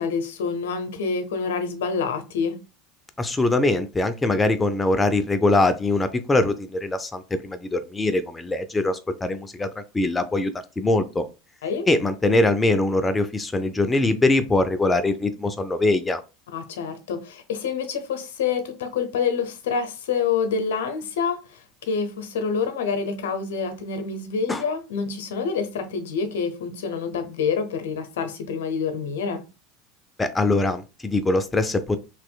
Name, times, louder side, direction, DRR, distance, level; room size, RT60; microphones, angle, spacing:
voice 1, 0.0-2.6 11.6-11.9 16.5-21.6 21.9-29.4, left 5 dB, 80° left, 0.8 m, -27 dB
voice 2, 3.2-11.2 11.9-16.2 24.5-24.6 30.2-32.0, left 2 dB, 15° left, 0.5 m, -22 dB
4.2 x 3.1 x 2.3 m
hypercardioid pair, 85°, 0 cm